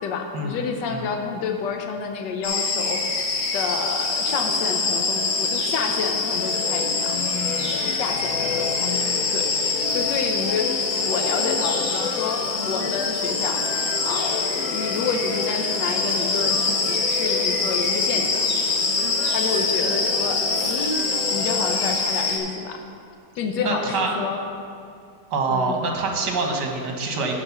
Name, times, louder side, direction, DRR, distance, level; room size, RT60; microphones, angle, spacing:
voice 1, 0.0-3.0 3.5-7.2 8.0-13.7 14.0-18.5 19.3-21.0 21.3-22.8 23.3-24.4 25.5-25.8, left 5 dB, 90° left, 4 dB, 1.4 m, -29 dB
sound 1, 2.4-22.4, left 3 dB, 45° left, 1.1 m, -25 dB
sound 2, 4.3-21.9, left 7 dB, 70° left, 0.9 m, -32 dB
voice 2, 23.6-24.1 25.3-27.3, right 3 dB, 75° right, 2 dB, 1.7 m, -25 dB
12.0 x 4.6 x 5.8 m, 2.3 s
omnidirectional pair, 1.8 m